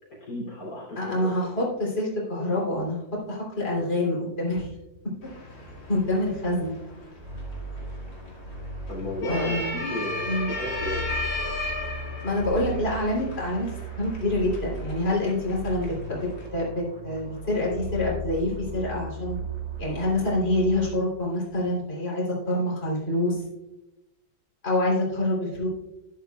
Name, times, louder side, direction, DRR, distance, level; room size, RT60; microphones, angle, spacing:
voice 1, 0.2-1.3 8.9-11.1, left 1 dB, 60° left, -4 dB, 3.7 m, -33 dB
voice 2, 1.0-3.0 3.3-4.7 5.9-6.8 9.3-9.7 10.3-10.5 12.2-13.7 14.0-19.4 19.8-23.4 24.6-25.7, left 1 dB, 30° left, -4 dB, 3.7 m, -26 dB
sound 1, 5.2-16.5, left 1 dB, 85° left, 3.0 m, -36 dB
sound 2, 7.2-21.3, right 1 dB, 55° right, 2.2 m, -37 dB
12.0 x 11.0 x 2.3 m, 0.94 s
omnidirectional pair, 2.0 m